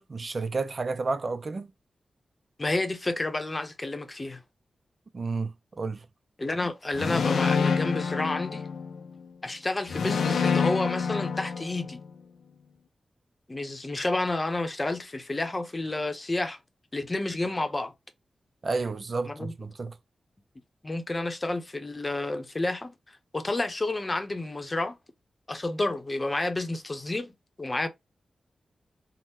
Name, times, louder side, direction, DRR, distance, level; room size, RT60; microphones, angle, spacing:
voice 1, 0.0-1.7 5.1-6.1 18.6-19.9, right 3 dB, 50° right, 0.4 m, -31 dB
voice 2, 2.6-4.4 6.4-8.7 9.4-12.0 13.5-16.6 16.9-17.9 19.2-19.5 20.8-22.9 23.3-24.9 25.5-27.3 27.6-27.9, left 2 dB, 30° left, 0.7 m, -30 dB
sound 1, 6.9-9.1 9.9-12.1, left 5 dB, 85° left, 0.4 m, -27 dB
2.8 x 2.1 x 3.5 m
cardioid pair, 55°, 0 cm